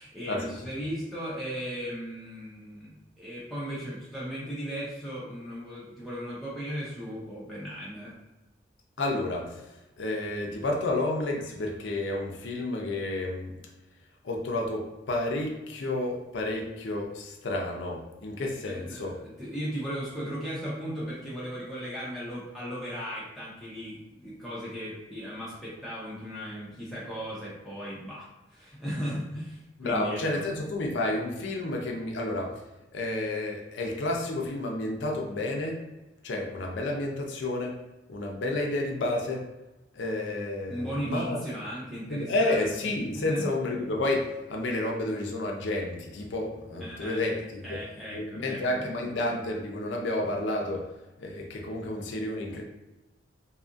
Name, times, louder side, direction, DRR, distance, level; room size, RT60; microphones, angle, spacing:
voice 1, 0.0-8.1 18.6-30.4 40.7-42.7 43.1-43.5 46.8-47.2 47.6-48.9, equal, ahead, -8 dB, 0.5 m, -37 dB
voice 2, 9.0-13.5 14.2-19.2 29.8-32.5 32.9-35.8 36.2-37.8 38.1-39.5 39.9-41.4 42.1-47.8 48.1-50.9 51.2-52.6, left 2 dB, 70° left, 0 dB, 0.5 m, -30 dB
2.7 x 2.4 x 2.4 m, 1.0 s
head